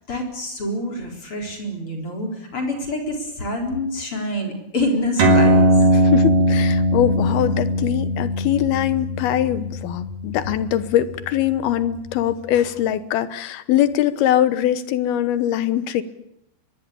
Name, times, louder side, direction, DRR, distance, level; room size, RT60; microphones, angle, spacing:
voice 1, 0.0-5.7, left 1 dB, 35° left, 2 dB, 4.7 m, -26 dB
sound 1, 5.2-12.1, equal, 70° right, 4.6 m, -20 dB
voice 2, 5.9-16.0, left 11 dB, 80° left, 13 dB, 3.0 m, -22 dB
23.5 x 21.5 x 8.6 m, 0.83 s
omnidirectional pair, 4.5 m